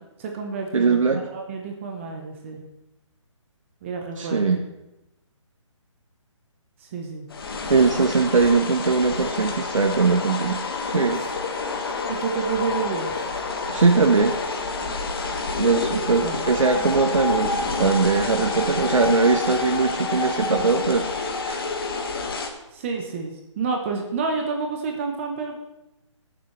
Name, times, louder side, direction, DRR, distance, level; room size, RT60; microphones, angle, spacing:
voice 1, 0.2-2.6 3.8-4.6 6.8-7.3 11.1-11.3 12.1-13.2 15.9-16.4 22.7-25.6, right 4 dB, 25° right, 2 dB, 1.0 m, -29 dB
voice 2, 0.7-1.2 4.2-4.6 7.7-11.2 13.7-14.4 15.6-21.1 21.5-21.6, right 4 dB, 85° right, 4 dB, 1.0 m, -21 dB
sound 1, 7.3-22.5, left 3 dB, 45° left, 1.6 m, -28 dB
19.5 x 7.3 x 3.2 m, 0.95 s
hypercardioid pair, 160°, 16 cm